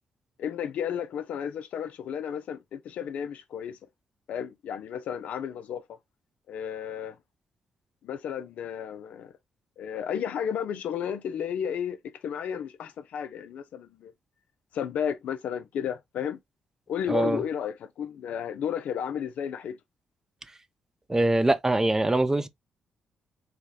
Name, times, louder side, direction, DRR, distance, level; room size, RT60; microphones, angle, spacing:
voice 1, 0.4-3.8 4.3-5.8 6.5-7.2 8.0-9.3 9.8-12.0 12.2-14.1 14.7-16.4 16.9-19.8, left 8 dB, 70° left, 0.4 m, -33 dB
voice 2, 17.1-17.4 21.1-22.5, right 1 dB, 20° right, 0.5 m, -23 dB
3.4 x 2.1 x 2.2 m
hypercardioid pair, 45°, 3 cm